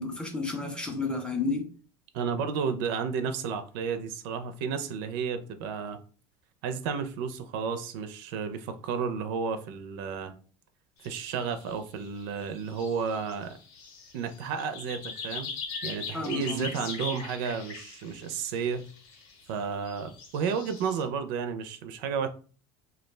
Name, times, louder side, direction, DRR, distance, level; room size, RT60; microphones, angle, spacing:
voice 1, 0.0-1.7 16.1-16.7, left 3 dB, 10° left, 0.5 m, -31 dB
voice 2, 2.1-6.0 6.6-10.3 11.0-13.6 14.1-15.5 15.8-18.9 19.5-22.3, right 6 dB, 70° right, 0.4 m, -32 dB
sound 1, 11.0-11.7 12.0-21.0, left 5 dB, 75° left, 0.8 m, -41 dB
2.3 x 2.1 x 3.2 m
supercardioid pair, 130°, 12 cm